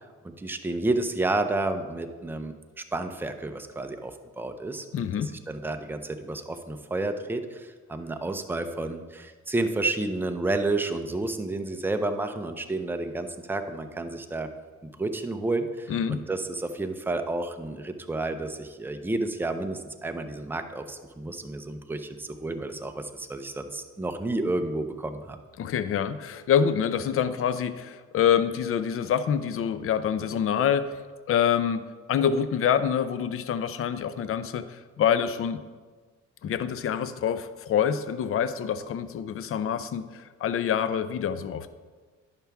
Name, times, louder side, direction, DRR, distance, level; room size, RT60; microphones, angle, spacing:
voice 1, 0.4-14.5 14.8-25.4, right 2 dB, 5° right, 6 dB, 0.6 m, -31 dB
voice 2, 4.9-5.3 15.9-16.2 25.6-31.0 31.3-35.6 36.4-41.7, left 8 dB, 45° left, 12 dB, 0.5 m, -26 dB
10.5 x 5.9 x 3.4 m, 1.4 s
cardioid pair, 90°, 30 cm